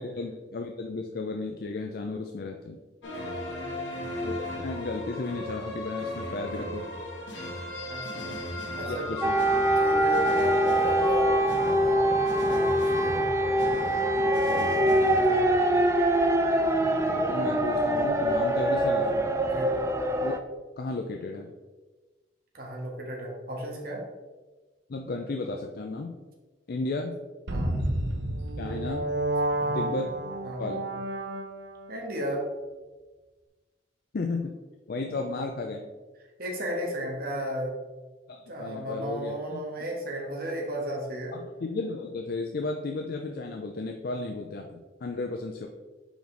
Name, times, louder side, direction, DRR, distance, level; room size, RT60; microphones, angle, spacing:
voice 1, 0.0-2.8 4.2-6.9 8.8-9.4 14.1-15.4 17.1-19.3 20.2-20.4 20.8-21.5 24.9-26.2 26.7-27.2 28.6-29.1 29.7-30.9 34.1-34.5 34.9-35.8 38.3-39.6 41.3-45.7, left 3 dB, 55° left, 3 dB, 0.5 m, -34 dB
sound 1, 3.0-15.5, left 1 dB, 85° left, 1.5 m, -34 dB
voice 2, 3.5-4.0 7.8-8.2 8.8-9.1 9.8-13.3 15.1-15.7 19.4-19.7 22.5-24.1 27.5-27.8 29.6-29.8 30.4-30.6 31.9-32.5 36.4-37.7 38.5-41.3, equal, 55° right, -1 dB, 1.4 m, -34 dB
sound 2, 9.2-20.4, right 1 dB, 15° right, 0.4 m, -24 dB
sound 3, 27.5-31.9, right 1 dB, 70° right, 0.8 m, -30 dB
5.1 x 5.0 x 3.8 m, 1.3 s
head